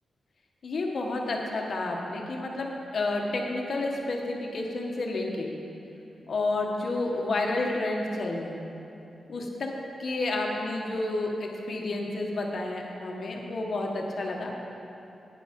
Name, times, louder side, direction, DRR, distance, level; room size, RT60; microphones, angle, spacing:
voice 1, 0.6-5.5 6.3-8.6 9.3-9.7 10.0-14.5, left 2 dB, 50° left, 0 dB, 1.2 m, -30 dB
9.6 x 9.2 x 5.2 m, 2.8 s
wide cardioid pair, 170°, 0 cm